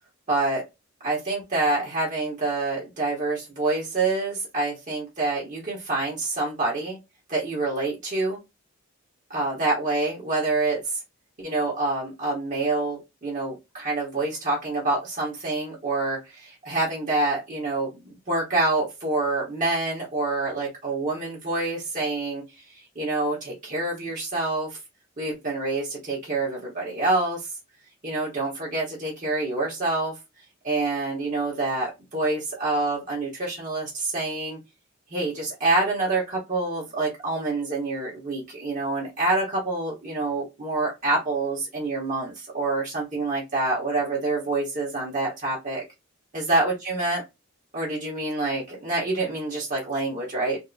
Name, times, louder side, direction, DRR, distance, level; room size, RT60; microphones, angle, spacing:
voice 1, 0.3-0.6 1.0-7.0 7.3-8.4 9.3-11.0 11.4-22.4 22.7-24.8 25.2-27.5 28.0-30.1 30.6-34.6 35.1-45.8 46.3-47.2 47.7-50.6, right 2 dB, 40° right, -4 dB, 1.2 m, -27 dB
3.6 x 2.7 x 2.7 m, 0.23 s
head